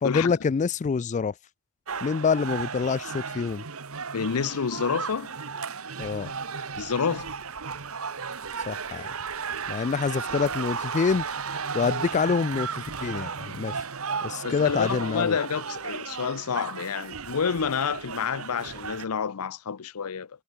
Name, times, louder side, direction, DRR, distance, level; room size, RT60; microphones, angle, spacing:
voice 1, 0.0-1.3 2.0-3.6 6.0-6.3 8.7-9.0 9.7-11.2 11.7-13.8 14.2-15.4, left 5 dB, 35° left, 0.3 m, -26 dB
sound 1, 1.9-19.1, right 5 dB, 70° right, 1.6 m, -34 dB
voice 2, 4.1-5.3 6.8-7.3 14.4-20.3, left 6 dB, 85° left, 0.6 m, -28 dB
head